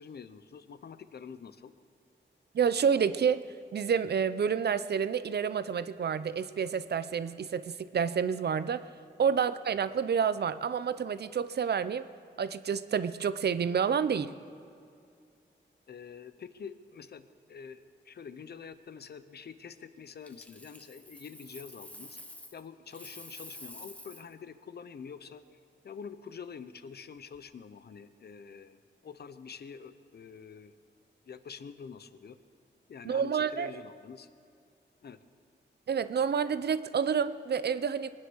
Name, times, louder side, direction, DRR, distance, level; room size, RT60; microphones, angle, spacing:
voice 1, 0.0-1.7 9.3-9.4 15.9-22.2 22.5-25.4 25.8-30.7 31.3-32.4 32.9-34.3 35.0-35.2, left 6 dB, 60° left, 12 dB, 0.8 m, -46 dB
voice 2, 2.5-3.4 3.7-8.8 9.2-12.1 12.4-14.3 33.0-33.7 35.9-38.1, right 7 dB, 60° right, 13 dB, 0.6 m, -29 dB
Coin (dropping), 20.2-22.6 22.9-24.3 27.2-27.4, left 1 dB, 5° left, 1.2 m, -49 dB
22.5 x 9.9 x 6.3 m, 2.4 s
wide cardioid pair, 105°, 19 cm